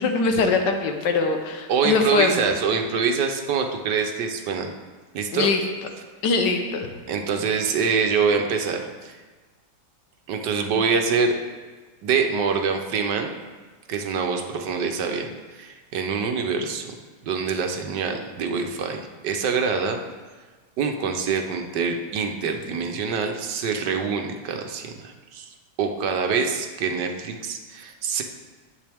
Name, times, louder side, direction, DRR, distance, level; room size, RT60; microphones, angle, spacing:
voice 1, 0.0-2.4 5.3-5.6 6.2-6.9, left 4 dB, 80° left, 5 dB, 1.6 m, -22 dB
voice 2, 1.7-4.7 5.1-5.5 7.1-9.2 10.3-11.3 12.0-13.3 13.9-16.9 17.2-20.0 20.8-25.4 25.8-28.2, right 5 dB, 75° right, 4 dB, 1.5 m, -25 dB
10.5 x 7.5 x 3.5 m, 1.3 s
omnidirectional pair, 1.9 m